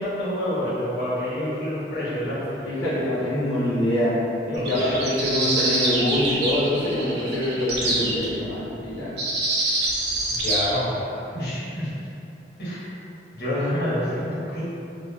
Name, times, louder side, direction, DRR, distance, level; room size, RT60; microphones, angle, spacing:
voice 1, 0.0-2.6 4.5-5.0 10.4-11.9 12.6-12.9 13.3-14.7, left 1 dB, 60° left, -10 dB, 1.0 m, -28 dB
voice 2, 2.6-4.2 4.6-9.1, left 1 dB, 85° left, -12 dB, 0.7 m, -24 dB
sound 1, 4.6-8.3 9.2-10.7, right 2 dB, 65° right, 0.5 m, -25 dB
3.2 x 2.2 x 2.2 m, 2.7 s
head